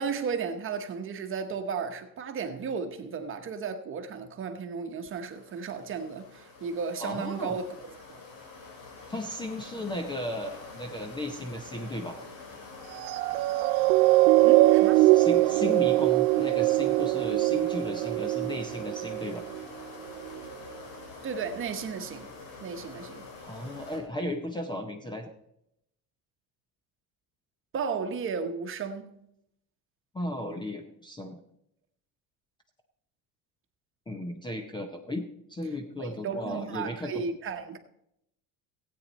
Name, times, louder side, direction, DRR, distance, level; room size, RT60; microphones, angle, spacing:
voice 1, 0.0-7.7 14.4-15.0 21.2-22.3 22.6-23.2 27.7-29.1 36.0-37.8, right 5 dB, 30° right, 1.1 m, -34 dB
sound 1, 5.1-24.0, left 3 dB, 70° left, 3.4 m, -46 dB
voice 2, 7.0-7.6 9.1-12.2 15.0-19.4 23.4-25.3 30.1-31.4 34.1-37.1, left 1 dB, 10° left, 0.7 m, -35 dB
sound 2, 13.0-19.6 20.3-20.4, right 19 dB, 75° right, 0.5 m, -22 dB
16.5 x 8.8 x 4.1 m
cardioid pair, 160°, 39 cm